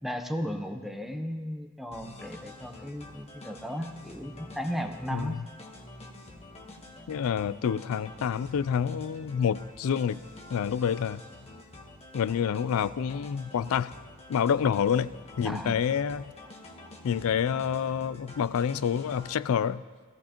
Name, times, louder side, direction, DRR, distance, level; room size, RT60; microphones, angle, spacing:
voice 1, 0.0-5.4 15.4-15.8, equal, ahead, 5 dB, 0.7 m, -35 dB
sound 1, 1.9-19.4, left 2 dB, 30° left, 1.2 m, -47 dB
voice 2, 5.1-5.4 7.1-10.2 10.5-11.2 12.1-13.9 14.3-15.1 15.4-16.2 17.0-19.8, left 7 dB, 70° left, 17 dB, 0.3 m, -28 dB
18.0 x 14.5 x 2.9 m, 1.5 s
head